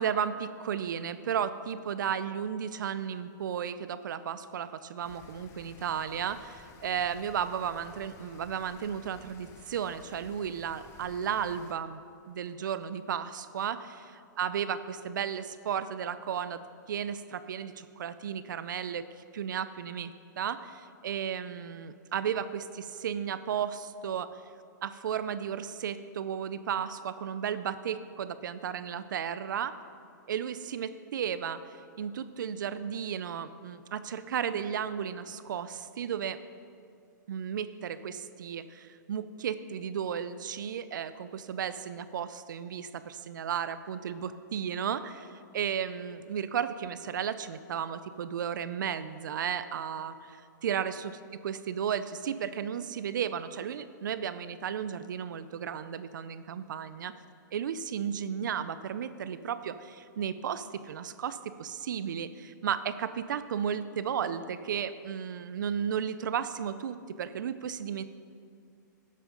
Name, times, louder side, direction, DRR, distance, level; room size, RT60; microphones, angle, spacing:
voice 1, 0.0-12.0 12.3-16.6 16.9-19.1 19.3-24.3 24.8-29.7 30.3-31.6 32.0-36.4 37.3-51.2 51.4-57.1 57.5-68.0, right 8 dB, 80° right, 13 dB, 0.5 m, -34 dB
Rain, 5.0-11.7, left 7 dB, 25° left, 0.5 m, -55 dB
12.0 x 7.5 x 3.8 m, 2.4 s
hypercardioid pair, 140°, 10 cm